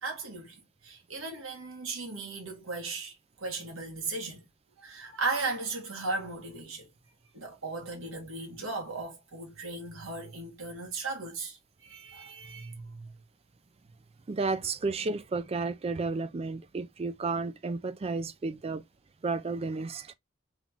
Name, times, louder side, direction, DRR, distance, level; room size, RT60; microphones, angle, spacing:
voice 1, 0.0-4.4 4.8-6.9 7.3-13.1, right 3 dB, 75° right, 1.7 m, -37 dB
voice 2, 14.3-18.8 19.2-20.1, right 3 dB, 30° right, 0.4 m, -32 dB
3.6 x 3.1 x 3.5 m
head